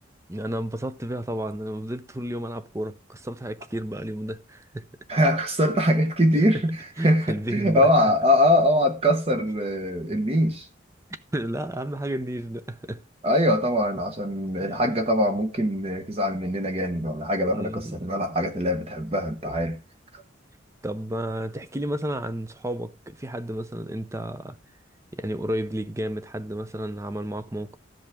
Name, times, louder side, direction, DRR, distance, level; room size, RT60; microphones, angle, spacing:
voice 1, 0.3-4.8 6.3-6.6 7.0-7.9 10.1-10.2 11.3-13.0 14.6-14.8 17.5-18.0 20.8-24.6 25.1-27.8, right 1 dB, 15° right, 0.6 m, -32 dB
voice 2, 5.1-10.7 13.2-19.8 20.1-20.2, equal, 30° right, 0.9 m, -23 dB
15.0 x 5.3 x 3.5 m
head